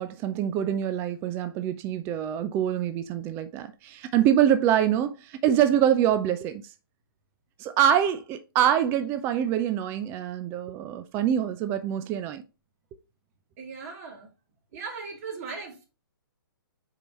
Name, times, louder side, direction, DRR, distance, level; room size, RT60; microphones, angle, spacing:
voice 1, 0.0-6.6 7.6-12.4, right 10 dB, 20° right, 0.4 m, -25 dB
voice 2, 13.6-14.3 14.7-15.8, right 4 dB, 40° right, 2.6 m, -38 dB
6.4 x 4.7 x 4.1 m
hypercardioid pair, 135°, 12 cm